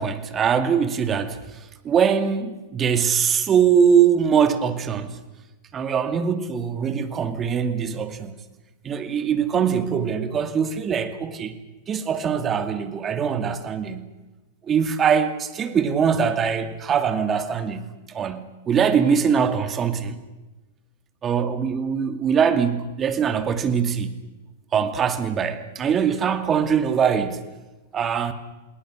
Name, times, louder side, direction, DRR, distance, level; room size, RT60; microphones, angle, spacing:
voice 1, 0.0-5.2 5.7-8.4 8.8-11.6 11.9-14.1 14.7-20.2 21.2-24.2 24.7-27.5 27.9-28.3, right 7 dB, 25° right, 2.4 m, -22 dB
29.0 x 20.0 x 6.4 m
hypercardioid pair, 115°, 0 cm